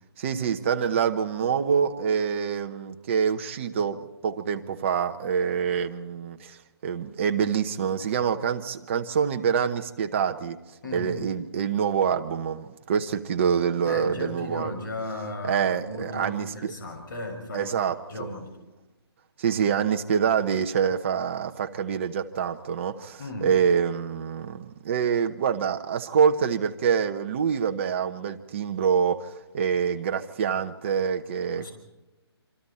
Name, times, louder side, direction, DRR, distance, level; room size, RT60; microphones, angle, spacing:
voice 1, 0.2-6.6 6.8-10.6 10.9-14.7 15.4-16.7 17.5-18.3 19.4-31.7, right 7 dB, 25° right, 1.0 m, -26 dB
voice 2, 10.8-11.3 13.8-17.7 18.1-18.5 23.2-23.6 31.5-31.7, left 2 dB, 50° left, 6.2 m, -35 dB
27.0 x 25.5 x 4.3 m
hypercardioid pair, 165°, 14 cm